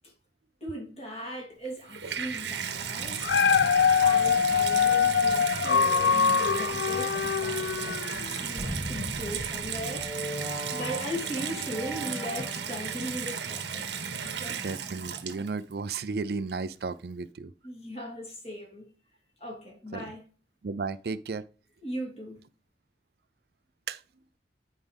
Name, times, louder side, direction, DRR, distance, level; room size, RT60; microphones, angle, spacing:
voice 1, 0.6-3.4 4.0-10.1 10.7-13.9 14.2-14.6 17.6-18.9 19.4-20.2 21.8-22.4, equal, 35° left, 2.9 m, -38 dB
Water tap faucet / Bathtub (filling or washing), 1.6-15.7 16.5-16.6, right 7 dB, 85° right, 1.1 m, -35 dB
Dog, 3.0-8.4 8.9-9.0, left 6 dB, 70° left, 0.4 m, -24 dB
sound 1, 8.6-13.0, equal, 10° right, 2.0 m, -38 dB
voice 2, 14.5-17.5 19.9-20.0 20.6-21.4 23.9-24.0, right 4 dB, 60° right, 0.4 m, -34 dB
9.3 x 4.9 x 3.5 m
head